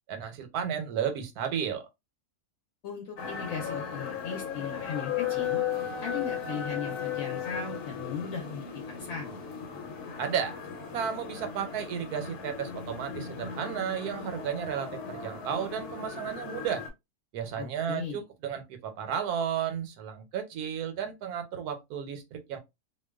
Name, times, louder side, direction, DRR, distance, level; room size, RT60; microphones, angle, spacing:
voice 1, 0.1-1.8 10.2-10.6 10.9-16.8 17.3-22.6, right 8 dB, 90° right, 1.1 m, -33 dB
voice 2, 2.8-5.6 6.0-9.3 17.6-18.2, left 6 dB, 70° left, 1.0 m, -37 dB
sound 1, 3.2-16.9, left 8 dB, 90° left, 1.1 m, -36 dB
2.5 x 2.2 x 2.2 m
omnidirectional pair, 1.6 m